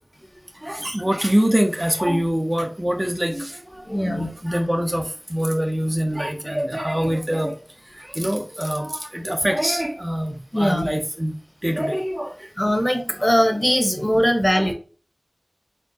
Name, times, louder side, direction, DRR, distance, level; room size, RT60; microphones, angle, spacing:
voice 1, 0.6-3.6 4.0-5.0 5.3-7.5 8.2-11.3 11.6-12.3 14.5-14.7, equal, 20° right, 0.7 m, -24 dB
voice 2, 3.9-4.3 10.5-10.9 12.6-14.7, equal, 20° left, 1.1 m, -20 dB
4.5 x 3.6 x 2.7 m
wide cardioid pair, 40°, 0 cm